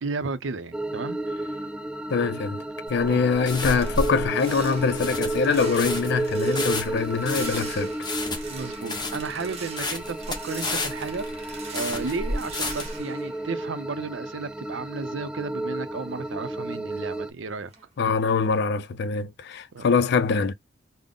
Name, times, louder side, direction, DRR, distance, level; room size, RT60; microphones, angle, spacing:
voice 1, 0.0-1.2 3.1-3.2 8.5-17.7 19.7-19.8, right 4 dB, 75° right, 0.5 m, -33 dB
sound 1, 0.7-17.3, right 1 dB, 5° right, 0.3 m, -32 dB
voice 2, 2.1-2.6 2.9-7.9 18.0-20.5, left 5 dB, 65° left, 0.4 m, -24 dB
sound 2, 2.9-13.0, left 2 dB, 25° left, 0.8 m, -32 dB
sound 3, 2.9-14.4 14.7-17.4 17.7-18.0 18.4-18.6, right 4 dB, 35° right, 1.0 m, -44 dB
3.7 x 2.1 x 3.5 m
head